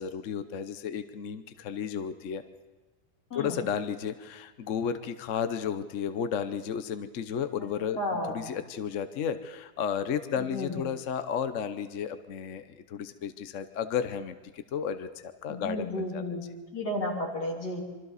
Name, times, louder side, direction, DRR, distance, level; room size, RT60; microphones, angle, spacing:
voice 1, 0.0-2.4 3.3-8.0 8.3-16.2, left 7 dB, 55° left, 10 dB, 1.1 m, -33 dB
voice 2, 7.9-8.5 10.4-10.8 15.5-17.8, left 1 dB, 85° left, -1 dB, 3.9 m, -33 dB
26.0 x 24.5 x 4.1 m, 1.2 s
omnidirectional pair, 1.7 m